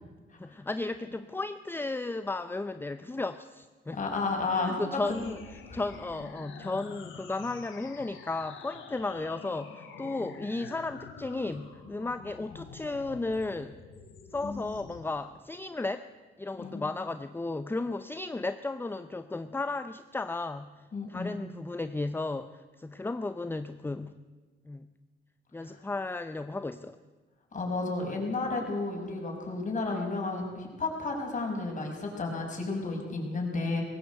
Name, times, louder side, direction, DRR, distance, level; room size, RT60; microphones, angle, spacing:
voice 1, 0.4-4.0 4.5-13.8 14.3-16.1 16.4-24.1 24.7-24.9 25.5-27.0, left 2 dB, 10° left, 11 dB, 0.6 m, -34 dB
voice 2, 3.9-5.3 5.7-5.8 14.4-14.6 16.6-16.8 20.9-21.3 25.6-25.7 27.5-33.8, left 3 dB, 40° left, 1 dB, 5.9 m, -32 dB
sound 1, 5.0-15.0, left 5 dB, 80° left, 3.0 m, -47 dB
19.5 x 17.0 x 8.1 m, 1.3 s
cardioid pair, 90°, 20 cm